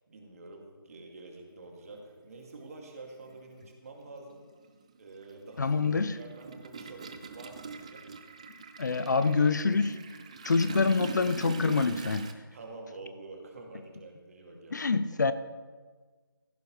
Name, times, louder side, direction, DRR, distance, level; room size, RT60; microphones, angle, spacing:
voice 1, 0.1-4.4 5.0-5.8 6.2-8.1 12.5-14.9, right 3 dB, 40° right, 2.2 m, -47 dB
Toilet flush, 1.8-1.9 3.2-3.4 3.7-12.3, right 5 dB, 15° right, 0.4 m, -43 dB
voice 2, 5.6-6.2 8.8-10.0 10.4-12.3 14.7-15.3, left 4 dB, 50° left, 0.5 m, -26 dB
15.5 x 9.8 x 3.1 m
figure-of-eight pair, 160°, 12 cm